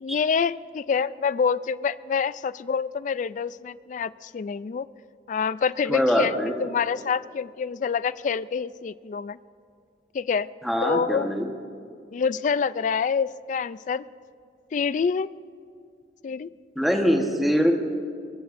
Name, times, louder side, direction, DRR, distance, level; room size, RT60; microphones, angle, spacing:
voice 1, 0.0-4.9 5.3-9.4 10.1-10.5 10.8-11.3 12.1-14.0 14.7-15.3 16.2-16.5, left 6 dB, 45° left, 18 dB, 0.3 m, -26 dB
voice 2, 5.9-6.6 10.6-11.5 16.8-17.7, equal, ahead, 2 dB, 1.2 m, -23 dB
22.5 x 21.5 x 2.6 m, 2.3 s
head